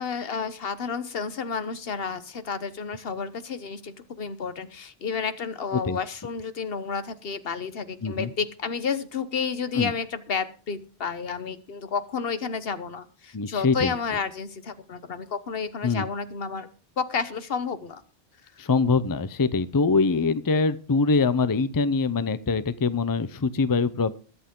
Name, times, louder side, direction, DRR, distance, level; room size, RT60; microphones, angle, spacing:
voice 1, 0.0-16.7 17.0-18.0, left 5 dB, 70° left, 13 dB, 1.2 m, -31 dB
voice 2, 13.3-13.9 15.8-16.0 18.6-24.1, left 4 dB, 25° left, 15 dB, 0.5 m, -23 dB
22.0 x 8.2 x 3.7 m, 0.36 s
omnidirectional pair, 1.0 m